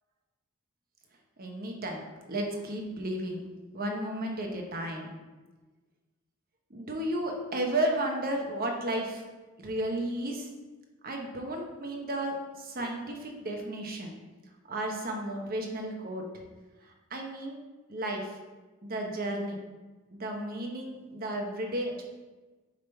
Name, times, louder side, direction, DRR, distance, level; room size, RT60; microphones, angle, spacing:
voice 1, 1.4-3.4 3.7-5.1 6.7-9.2 9.6-10.5 11.0-14.1 14.7-16.2 17.1-17.6 17.9-18.4 18.8-19.6 20.1-22.0, right 1 dB, 45° right, 2 dB, 1.0 m, -33 dB
7.0 x 3.8 x 4.5 m, 1.2 s
head